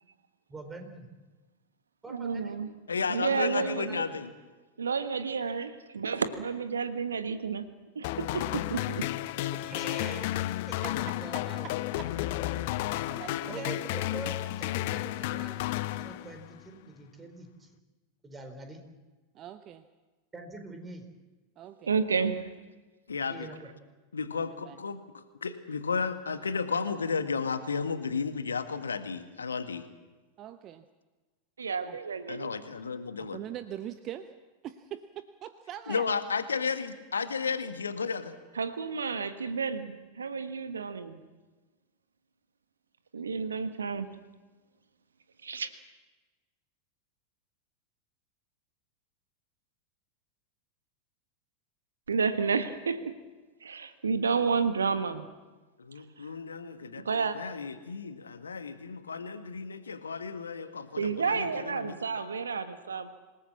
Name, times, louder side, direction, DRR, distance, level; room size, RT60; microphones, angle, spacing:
voice 1, 0.5-1.1 2.0-2.6 3.6-4.0 9.5-11.7 13.5-17.7 18.2-18.8 20.3-21.1 23.3-23.7, right 2 dB, 15° right, 6 dB, 4.0 m, -44 dB
voice 2, 2.1-2.7 3.1-4.0 4.8-7.6 7.9-8.4 8.7-9.0 21.9-22.4 31.6-32.5 38.6-41.2 43.1-44.1 45.4-45.7 52.1-53.0 53.6-55.2 57.0-57.4 61.0-63.1, right 5 dB, 70° right, 10 dB, 1.5 m, -30 dB
voice 3, 2.9-4.3 23.1-23.5 24.1-29.9 32.3-33.4 35.9-38.4 55.8-57.0 57.3-62.0, left 5 dB, 75° left, 10 dB, 1.7 m, -33 dB
sound 1, 8.0-16.6, left 15 dB, 50° left, 0.8 m, -32 dB
voice 4, 13.1-13.8 14.8-15.0 19.3-19.8 21.6-21.9 24.3-24.8 30.4-30.8 31.9-32.0 33.2-34.3 34.6-36.1, right 11 dB, 35° right, 11 dB, 0.9 m, -42 dB
26.5 x 18.0 x 7.3 m, 1.2 s
figure-of-eight pair, 90°, 0 cm